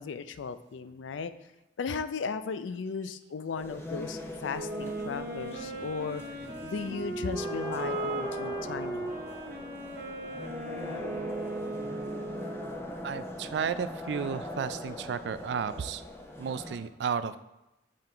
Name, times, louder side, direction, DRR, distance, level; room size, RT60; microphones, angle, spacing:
voice 1, 0.0-1.3 1.8-6.2 6.6-9.1, left 5 dB, 90° left, 12 dB, 0.4 m, -36 dB
sound 1, 3.6-16.8, left 1 dB, 15° left, 0.6 m, -41 dB
Wind instrument woodwind instrument, 4.5-12.8, right 2 dB, 50° right, 0.8 m, -37 dB
voice 2, 13.0-16.0 16.4-17.4, right 6 dB, 65° right, 13 dB, 0.3 m, -33 dB
7.5 x 3.8 x 4.4 m, 0.97 s
head